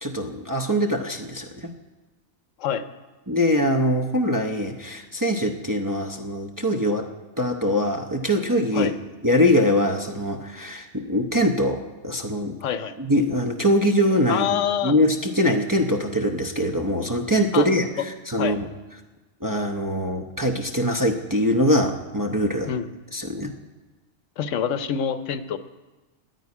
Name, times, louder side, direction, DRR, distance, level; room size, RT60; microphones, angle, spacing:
voice 1, 0.0-1.7 3.3-7.1 7.4-8.9 9.2-12.6 13.0-14.5 14.8-18.7 19.4-22.7 23.1-23.5, equal, 20° right, 3 dB, 0.6 m, -23 dB
voice 2, 12.6-12.9 14.3-14.9 17.5-17.7 18.4-18.6 22.6-22.9 24.4-25.6, left 8 dB, 80° left, 11 dB, 1.0 m, -26 dB
9.6 x 9.3 x 9.6 m, 1.2 s
omnidirectional pair, 1.3 m